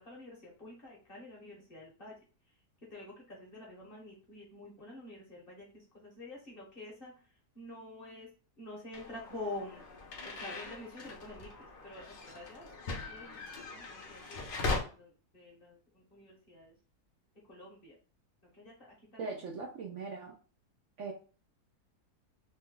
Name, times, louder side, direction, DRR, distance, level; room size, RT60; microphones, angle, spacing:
voice 1, 0.0-2.2 2.4-2.6 2.9-16.7 17.4-18.0 18.5-19.3, left 2 dB, 45° left, -2 dB, 0.9 m, -48 dB
sound 1, 8.9-14.8, left 3 dB, 60° left, 0.5 m, -40 dB
voice 2, 19.2-20.4 21.0-21.1, right 4 dB, 65° right, 0 dB, 0.8 m, -40 dB
3.0 x 2.2 x 3.5 m, 0.36 s
omnidirectional pair, 1.7 m